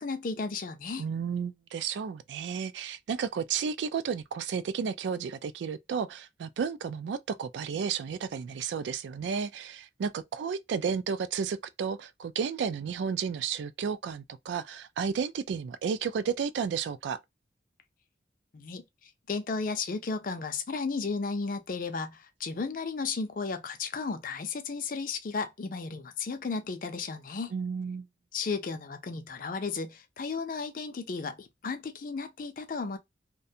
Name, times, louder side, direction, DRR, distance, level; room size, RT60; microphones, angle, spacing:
voice 1, 0.0-1.1 18.5-27.5 28.3-33.0, left 4 dB, 50° left, 0.4 m, -34 dB
voice 2, 1.0-17.2 27.5-28.1, right 6 dB, 80° right, 0.3 m, -32 dB
2.4 x 2.2 x 2.7 m
head